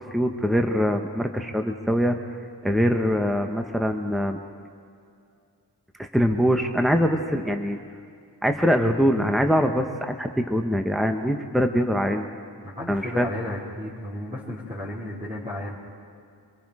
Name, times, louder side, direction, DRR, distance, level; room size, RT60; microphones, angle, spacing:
voice 1, 0.0-2.2 2.6-4.4 6.0-7.8 8.4-12.3 12.9-13.3, equal, ahead, 5 dB, 1.1 m, -23 dB
voice 2, 12.6-15.8, left 1 dB, 20° right, -8 dB, 3.7 m, -33 dB
26.5 x 22.0 x 4.9 m, 2.4 s
wide cardioid pair, 95°, 42 cm